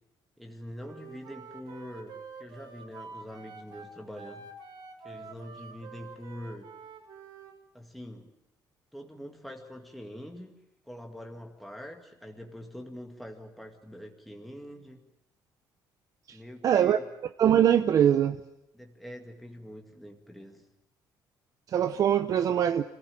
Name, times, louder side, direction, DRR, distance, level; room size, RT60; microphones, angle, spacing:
voice 1, 0.4-4.5 5.0-6.7 7.7-8.3 8.9-10.6 10.8-15.0 16.3-17.0 18.7-20.6 22.3-22.4, equal, ahead, 2 dB, 2.1 m, -44 dB
Wind instrument woodwind instrument, 0.8-7.6, right 4 dB, 80° right, 3.8 m, -47 dB
voice 2, 16.6-17.0 17.4-18.4 21.7-22.8, right 9 dB, 50° right, 9 dB, 0.8 m, -22 dB
26.0 x 16.0 x 8.9 m, 0.88 s
cardioid pair, 145°, 8 cm